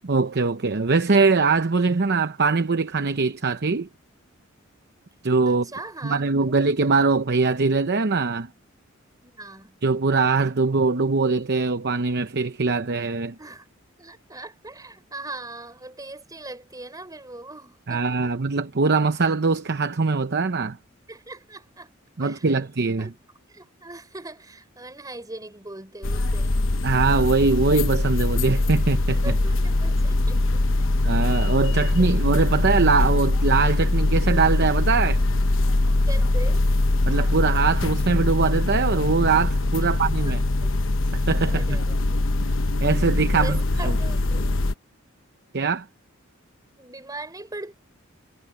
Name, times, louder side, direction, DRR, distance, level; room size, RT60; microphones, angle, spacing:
voice 1, 0.0-3.9 5.2-5.6 6.0-8.5 9.8-13.3 17.9-20.8 22.2-23.1 26.8-29.3 31.0-35.2 37.0-40.4 41.1-41.8 42.8-44.0 45.5-45.9, right 4 dB, 55° right, 0.8 m, -22 dB
voice 2, 5.5-6.2 9.2-9.8 13.4-13.7 14.0-18.3 21.1-21.9 22.2-22.6 23.0-23.2 23.5-26.6 29.2-30.9 31.3-32.1 36.1-36.6 39.8-40.0 40.2-40.8 41.5-42.1 43.3-44.6 46.8-47.7, right 2 dB, 20° right, 4.7 m, -40 dB
sound 1, 26.0-44.7, left 2 dB, 65° left, 1.0 m, -22 dB
head